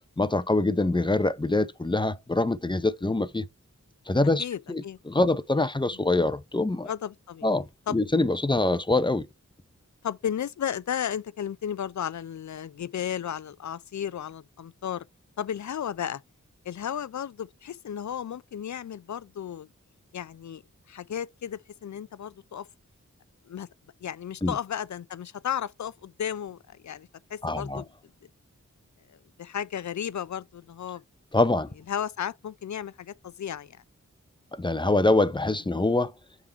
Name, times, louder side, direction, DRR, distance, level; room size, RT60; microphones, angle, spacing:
voice 1, 0.2-3.4 4.1-6.9 7.4-9.3 24.4-24.5 27.4-27.8 31.3-31.7 34.5-36.1, left 2 dB, 15° left, 0.6 m, -24 dB
voice 2, 4.4-5.0 6.9-7.5 7.9-8.0 10.0-15.1 15.4-16.2 16.6-19.7 20.1-20.6 20.9-22.7 23.5-23.7 24.0-27.9 29.4-31.0 31.9-33.8, left 9 dB, 65° left, 0.5 m, -34 dB
7.0 x 3.7 x 4.5 m
wide cardioid pair, 50°, 30 cm